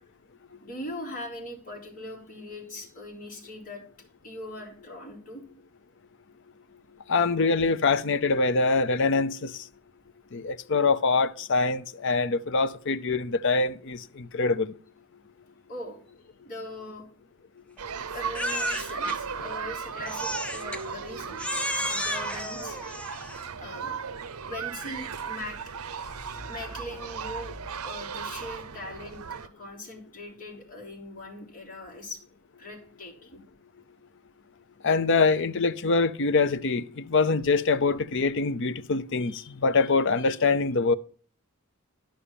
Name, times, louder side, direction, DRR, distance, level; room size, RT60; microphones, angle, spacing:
voice 1, 0.6-3.8 4.2-5.4 15.7-16.0 16.4-17.0 18.1-21.4 21.9-22.8 23.6-24.0 24.4-25.8 26.5-27.6 27.8-29.2 29.6-32.2 32.6-33.4, left 1 dB, 40° left, 3.8 m, -40 dB
voice 2, 7.1-9.6 10.3-14.7 34.8-40.9, left 4 dB, 55° left, 0.6 m, -24 dB
sound 1, 17.8-29.5, right 6 dB, 80° right, 0.7 m, -36 dB
Crying sobbing, 18.3-19.2 20.1-20.8 21.4-23.5, left 1 dB, 5° left, 0.7 m, -32 dB
sound 2, 23.2-24.0 24.5-27.7, equal, 50° right, 5.9 m, -48 dB
11.5 x 5.7 x 6.9 m
head